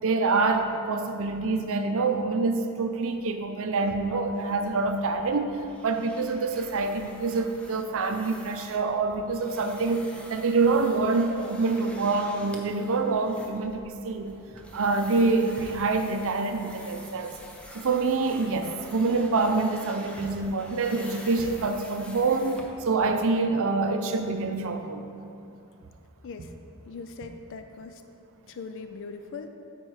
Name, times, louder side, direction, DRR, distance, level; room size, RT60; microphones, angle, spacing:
voice 1, 0.0-14.3 14.7-17.3 17.7-25.1, right 3 dB, 65° right, 7 dB, 0.6 m, -26 dB
sound 1, 4.3-23.1, equal, 5° left, 0.7 m, -47 dB
voice 2, 26.9-28.0 28.5-29.5, left 4 dB, 60° left, 7 dB, 0.4 m, -40 dB
8.7 x 4.5 x 4.8 m, 2.6 s
head